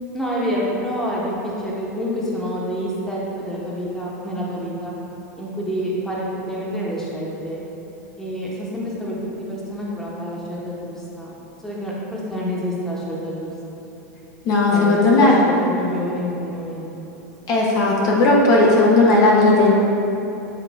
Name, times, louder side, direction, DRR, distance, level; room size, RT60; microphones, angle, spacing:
voice 1, 0.1-4.9 5.3-7.6 8.2-11.3 11.6-13.8 14.7-16.9 17.4-17.5, equal, 5° left, -5 dB, 1.3 m, -28 dB
voice 2, 14.4-15.3 17.5-19.7, left 2 dB, 45° left, -3 dB, 1.0 m, -15 dB
9.1 x 3.2 x 3.6 m, 3.0 s
hypercardioid pair, 105°, 9 cm